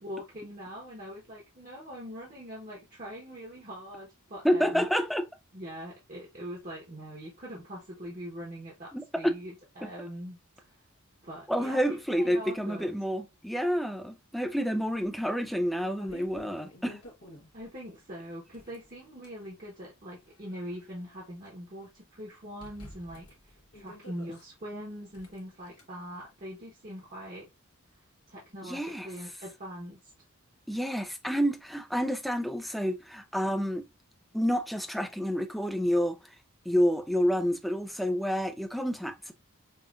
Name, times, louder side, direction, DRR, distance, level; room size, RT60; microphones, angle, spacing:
voice 1, 0.0-4.9 5.5-10.8 11.2-12.9 17.5-27.5 28.3-30.0, equal, 40° right, 1.0 m, -42 dB
voice 2, 4.4-5.3 8.9-9.3 9.8-9.9 11.5-17.0 28.6-29.1 30.7-33.9 34.3-36.2 36.7-39.3, equal, ahead, 0.3 m, -29 dB
sound 1, 15.0-15.1 15.6-17.7 18.4-19.4 20.1-21.5 21.8-21.9 22.6-24.4 25.1-25.8, left 1 dB, 80° left, 1.2 m, -51 dB
5.5 x 2.4 x 2.4 m
head